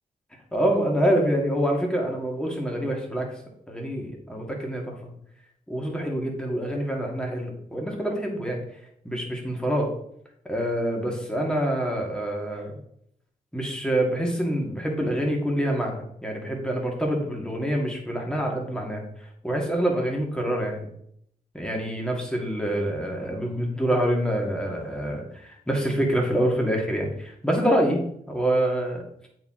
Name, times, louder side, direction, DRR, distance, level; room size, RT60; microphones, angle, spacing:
voice 1, 0.5-3.4 3.7-5.1 5.7-8.6 9.0-9.9 10.5-12.8 13.5-19.0 19.4-20.9 21.5-28.0 28.3-29.0, right 1 dB, 5° left, 0 dB, 1.9 m, -26 dB
8.4 x 4.5 x 3.7 m, 0.71 s
cardioid pair, 90°, 15 cm